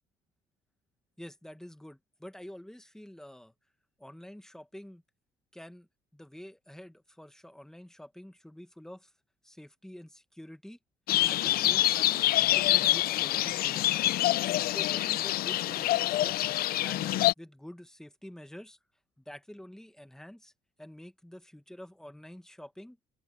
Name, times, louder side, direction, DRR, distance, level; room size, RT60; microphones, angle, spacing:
voice 1, 1.2-3.5 4.0-5.0 5.5-5.9 6.1-9.1 9.4-10.8 11.3-14.0 14.7-16.5 16.8-18.8 19.2-20.5 20.8-23.0, left 1 dB, 5° left, 1.5 m, -47 dB
sound 1, 11.1-17.3, left 15 dB, 60° left, 0.5 m, -26 dB
open air
cardioid pair, 110°, 17 cm